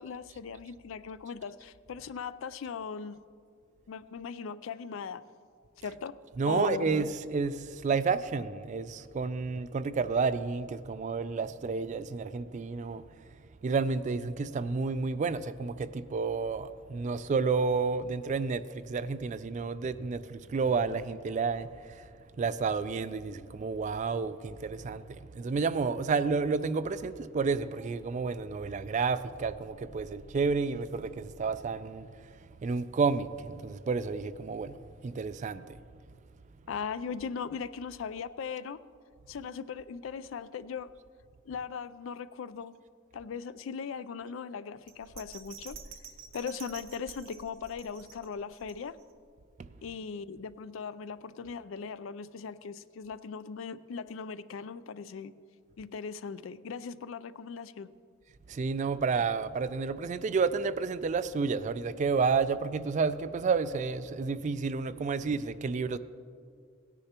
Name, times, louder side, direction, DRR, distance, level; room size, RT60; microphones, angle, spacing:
voice 1, 0.0-3.2 3.9-5.2 5.8-6.1 6.5-6.9 36.7-38.8 39.3-41.0 41.5-42.7 43.1-45.8 46.3-49.0 49.8-55.3 55.8-57.9, left 6 dB, 70° left, 0.4 m, -39 dB
voice 2, 6.4-13.0 13.6-22.0 22.4-32.1 32.6-34.8 35.0-35.6 58.5-66.0, right 4 dB, 35° right, 0.3 m, -30 dB
Bell, 44.9-49.2 49.6-49.7, right 6 dB, 65° right, 0.7 m, -49 dB
17.0 x 9.9 x 2.9 m
head